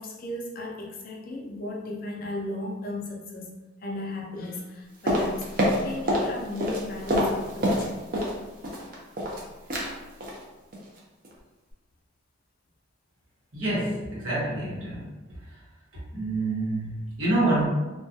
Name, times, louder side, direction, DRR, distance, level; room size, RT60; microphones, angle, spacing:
voice 1, 0.0-7.9, left 2 dB, 45° left, 0 dB, 0.4 m, -36 dB
sound 1, 5.1-6.3 6.6-8.4 8.6-9.4 9.7-9.9 10.2-10.4 10.7-11.0 11.2-11.3, equal, 40° right, 0.4 m, -26 dB
voice 2, 13.5-15.1 15.5-15.6 16.1-17.7, right 2 dB, 70° right, -8 dB, 1.0 m, -27 dB
2.2 x 2.2 x 2.6 m, 1.1 s
head